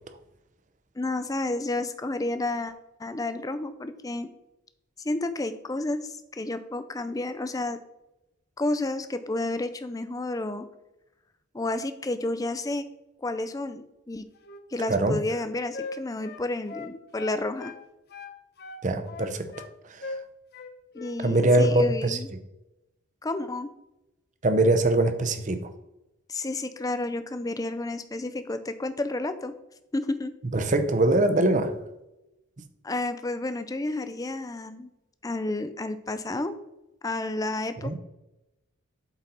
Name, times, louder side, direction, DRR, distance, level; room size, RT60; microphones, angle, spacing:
voice 1, 1.0-2.7 3.0-4.3 5.0-7.8 8.6-10.7 11.5-12.9 13.2-14.3 14.7-17.7 20.9-22.3 23.2-23.7 26.3-29.5 29.9-30.3 32.8-34.9 35.2-36.6 37.0-38.0, left 2 dB, 15° left, 11 dB, 0.4 m, -31 dB
Wind instrument woodwind instrument, 14.3-17.8 18.1-19.7 20.0-20.2 20.5-21.2 21.4-21.7, left 2 dB, 50° left, 0.7 m, -40 dB
voice 2, 18.8-19.5 19.9-20.1 21.2-22.2 24.4-25.7 30.5-31.8 37.8-38.0, right 2 dB, 35° right, 9 dB, 0.6 m, -23 dB
7.9 x 4.0 x 4.1 m, 0.93 s
head